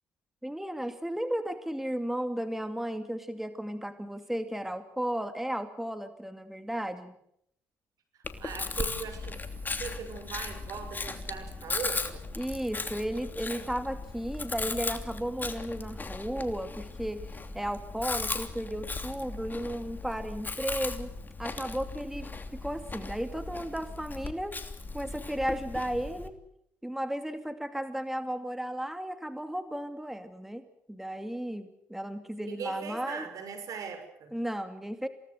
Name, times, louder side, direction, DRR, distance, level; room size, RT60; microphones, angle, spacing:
voice 1, 0.4-7.1 12.4-17.2 17.5-21.1 21.4-24.6 24.9-26.4 26.8-33.3 34.3-35.1, right 1 dB, 5° right, 9 dB, 2.5 m, -34 dB
Chewing mastication, 8.2-26.3, left 3 dB, 30° left, 3.0 m, -37 dB
voice 2, 8.4-9.4 9.8-12.2 32.4-34.3, right 6 dB, 65° right, 8 dB, 6.1 m, -39 dB
27.5 x 18.5 x 8.1 m, 0.73 s
supercardioid pair, 60°, 6 cm